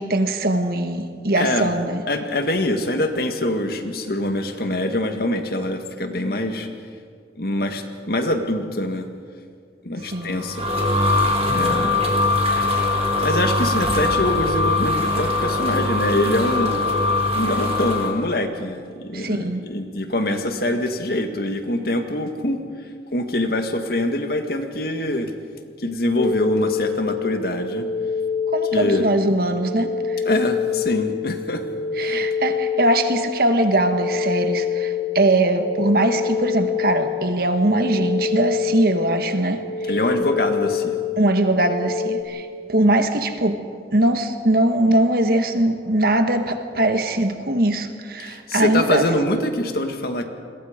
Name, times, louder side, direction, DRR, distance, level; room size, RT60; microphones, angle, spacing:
voice 1, 0.0-2.0 10.1-10.3 19.1-19.6 28.5-30.2 32.0-39.6 41.2-43.6 43.9-49.0, right 1 dB, 55° right, 7 dB, 1.7 m, -21 dB
voice 2, 1.4-1.7 2.1-6.7 7.4-9.1 9.8-10.7 11.5-12.0 13.2-16.8 17.3-22.6 23.1-25.3 25.8-27.9 28.7-29.1 30.2-31.6 32.0-32.3 39.9-41.0 48.2-50.3, left 1 dB, 60° left, 6 dB, 1.8 m, -24 dB
sound 1, 10.1-18.1, left 2 dB, 35° right, 3.4 m, -21 dB
sound 2, 26.2-42.2, left 6 dB, 80° left, 4.5 m, -26 dB
29.0 x 22.0 x 5.2 m, 2.1 s
head